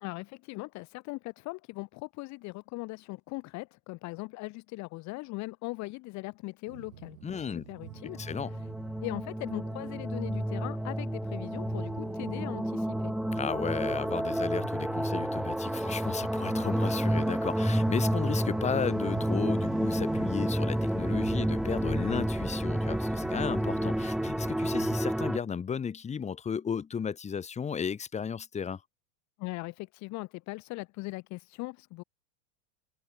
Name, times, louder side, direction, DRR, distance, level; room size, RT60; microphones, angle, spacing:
voice 1, 0.0-8.2 9.0-13.1 29.4-32.0, left 23 dB, 45° left, 1.1 m, -40 dB
sound 1, 6.7-25.0, right 14 dB, 90° right, 2.8 m, -48 dB
voice 2, 7.2-7.6 8.2-8.5 13.3-28.8, left 7 dB, 15° left, 1.3 m, -34 dB
sound 2, 7.8-25.4, equal, ahead, 1.8 m, -30 dB
supercardioid pair, 130°, 40 cm